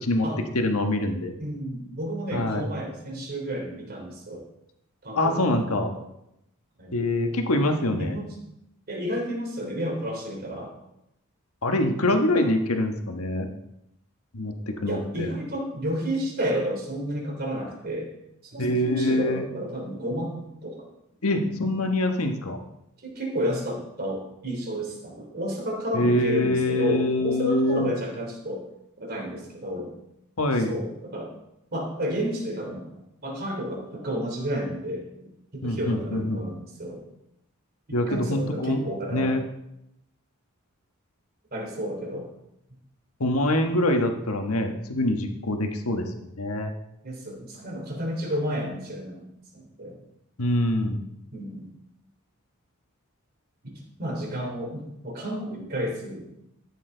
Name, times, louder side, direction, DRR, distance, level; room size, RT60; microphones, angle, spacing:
voice 1, 0.5-1.3 2.3-2.6 5.1-5.9 6.9-8.2 11.6-13.5 14.3-15.3 18.6-19.4 21.2-22.6 25.9-27.9 30.4-30.7 35.6-36.4 37.9-38.8 39.1-39.4 43.2-46.7 50.4-51.1, left 1 dB, 85° left, 4 dB, 1.5 m, -25 dB
voice 2, 1.4-4.4 5.0-6.0 6.8-6.9 7.7-8.3 8.9-10.8 12.4-12.5 14.8-18.1 18.4-20.9 21.4-21.7 23.0-28.6 29.0-29.9 30.5-31.3 31.7-32.9 33.2-37.0 37.9-39.3 41.5-42.3 47.0-49.3 49.5-50.0 51.3-51.7 53.6-53.7 54.0-56.3, equal, 45° right, 0 dB, 3.3 m, -31 dB
13.5 x 9.0 x 3.9 m, 0.81 s
head